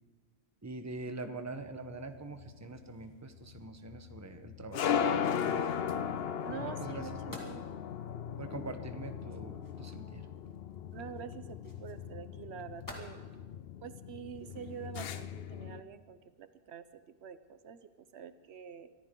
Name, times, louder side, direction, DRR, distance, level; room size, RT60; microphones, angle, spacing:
voice 1, 0.6-5.6 6.5-7.4 8.4-10.2, right 3 dB, 15° right, 7 dB, 0.9 m, -44 dB
sound 1, 1.8-15.8, left 7 dB, 70° left, 0.9 m, -37 dB
sound 2, 5.7-13.0, equal, 20° left, 2.1 m, -55 dB
voice 2, 6.4-7.7 10.9-13.2 13.8-18.9, right 8 dB, 80° right, 12 dB, 1.0 m, -46 dB
23.5 x 14.5 x 3.8 m, 1.4 s
omnidirectional pair, 1.1 m